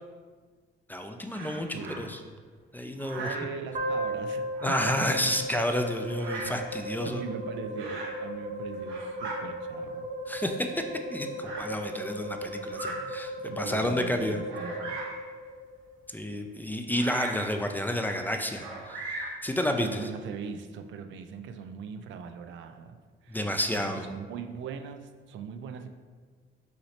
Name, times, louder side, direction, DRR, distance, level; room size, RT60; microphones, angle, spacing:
voice 1, 0.9-2.2 2.7-3.3 4.6-7.2 10.3-10.8 11.1-14.4 16.1-20.0 23.3-24.0, left 1 dB, 10° left, 5 dB, 0.3 m, -30 dB
Bird vocalization bird call bird song, 1.3-2.0 3.0-3.5 4.5-5.1 6.1-6.6 7.8-8.2 8.7-9.4 10.3-10.4 11.4-11.7 12.6-13.0 13.6-13.7 14.5-15.2 16.9-17.5 18.6-19.4, right 2 dB, 90° right, 0.9 m, -38 dB
voice 2, 1.7-2.1 3.2-4.8 7.0-10.1 12.7-13.2 13.5-15.0 19.8-25.9, right 6 dB, 70° right, 7 dB, 0.4 m, -40 dB
sound 1, 3.7-16.0, equal, 40° right, 0.9 m, -36 dB
5.7 x 3.1 x 2.8 m, 1.5 s
cardioid pair, 90°, 20 cm